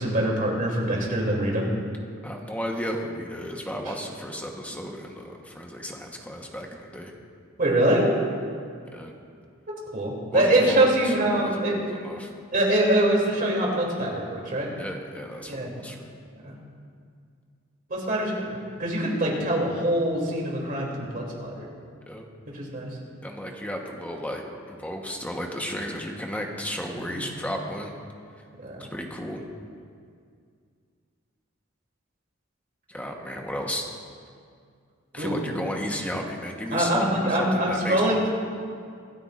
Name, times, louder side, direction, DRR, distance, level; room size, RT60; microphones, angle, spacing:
voice 1, 0.0-1.7 7.6-8.1 9.9-11.7 12.5-14.7 15.4-15.8 16.4-16.5 17.9-21.7 22.5-22.9 26.9-27.2 28.6-28.9 35.1-35.4 36.7-38.3, right 1 dB, 45° right, -2 dB, 3.1 m, -24 dB
voice 2, 2.2-7.1 8.9-9.1 10.3-12.3 14.8-16.1 22.1-22.2 23.2-24.4 24.7-27.9 28.8-29.4 32.9-33.9 35.1-38.3, equal, 5° left, 1 dB, 1.2 m, -33 dB
25.5 x 12.5 x 2.6 m, 2.2 s
head